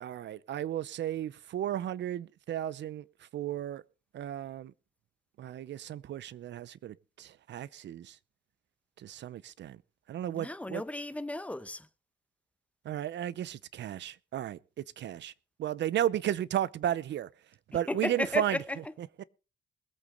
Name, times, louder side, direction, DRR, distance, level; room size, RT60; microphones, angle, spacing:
voice 1, 0.0-3.0 3.3-3.8 4.1-4.7 5.4-8.1 9.0-9.8 10.1-10.8 12.8-14.6 15.0-15.3 15.6-17.3 17.7-18.6, right 11 dB, 65° right, 0.7 m, -34 dB
voice 2, 10.3-11.9 17.9-18.8, left 1 dB, 5° left, 0.9 m, -34 dB
21.5 x 8.5 x 3.9 m
cardioid pair, 90°, 20 cm